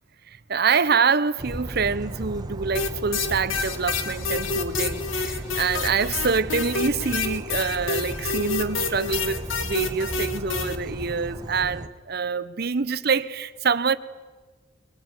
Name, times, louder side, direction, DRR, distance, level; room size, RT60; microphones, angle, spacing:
voice 1, 0.3-14.0, right 5 dB, 55° right, 0.9 m, -26 dB
sound 1, 1.4-11.9, right 1 dB, 20° right, 1.3 m, -35 dB
sound 2, 2.7-10.8, left 4 dB, 85° left, 1.9 m, -28 dB
23.0 x 21.5 x 9.7 m
head